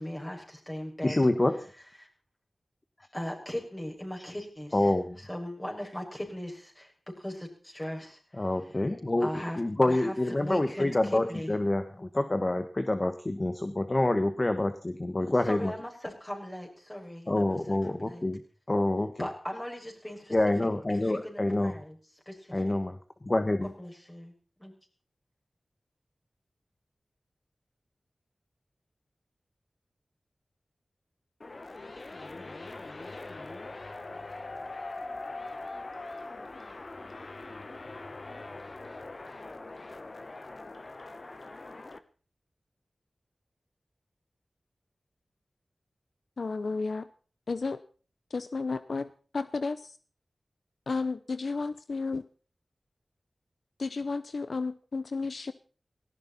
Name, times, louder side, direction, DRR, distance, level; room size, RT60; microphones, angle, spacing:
voice 1, 0.0-1.2 3.1-4.9 5.3-8.4 9.2-11.0 11.3-11.5 15.5-17.6 17.9-18.2 19.2-20.4 21.1-21.9 22.3-22.6 23.8-24.3 24.6-24.7, equal, 15° left, 0 dB, 6.1 m, -38 dB
voice 2, 1.0-1.7 4.7-5.2 8.3-15.7 17.3-18.4 18.7-19.3 20.3-21.7 22.5-23.0 23.2-23.7, left 1 dB, 35° left, 8 dB, 1.4 m, -27 dB
sound 1, 31.4-42.0, left 2 dB, 55° left, 1.3 m, -42 dB
voice 3, 46.4-47.1 47.5-47.8 48.3-50.0 50.9-52.2 53.8-55.5, left 4 dB, 75° left, 13 dB, 0.7 m, -32 dB
18.5 x 17.0 x 4.2 m, 0.40 s
cardioid pair, 50°, 0 cm